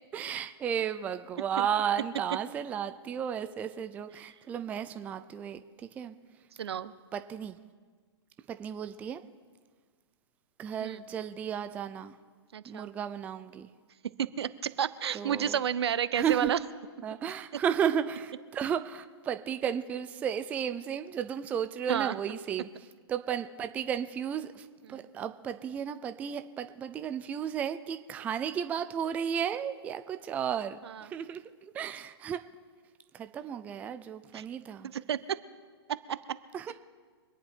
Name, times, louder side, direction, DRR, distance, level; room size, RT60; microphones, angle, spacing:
voice 1, 0.1-5.6 6.0-6.1 7.1-7.6 8.5-9.2 10.6-12.2 12.7-13.7 15.1-15.6 16.1-16.5 17.0-22.7 23.1-32.4 33.1-34.9 36.5-36.7, right 8 dB, 10° right, 10 dB, 0.4 m, -33 dB
voice 2, 6.6-6.9 10.8-11.0 12.5-12.9 14.2-16.6 21.9-22.1 24.9-25.0 30.8-31.0 34.3-34.5 35.1-35.4 36.1-36.2, right 9 dB, 70° right, 15 dB, 0.8 m, -31 dB
25.0 x 10.0 x 4.5 m, 1.5 s
hypercardioid pair, 150°, 14 cm